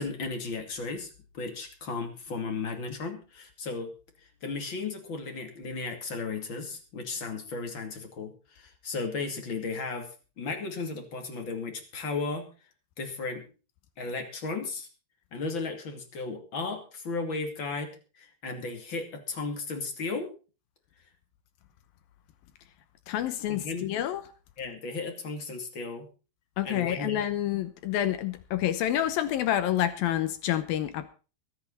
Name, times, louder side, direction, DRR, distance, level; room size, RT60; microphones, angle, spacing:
voice 1, 0.0-3.9 4.2-10.1 10.4-12.5 13.0-13.4 14.0-14.9 15.3-17.9 18.2-20.3 23.5-23.9 24.6-26.1 26.6-27.2, left 4 dB, 35° left, 5 dB, 2.4 m, -35 dB
voice 2, 23.1-24.2 26.6-31.1, left 12 dB, 75° left, 12 dB, 2.2 m, -28 dB
23.5 x 8.4 x 4.2 m, 0.34 s
omnidirectional pair, 5.3 m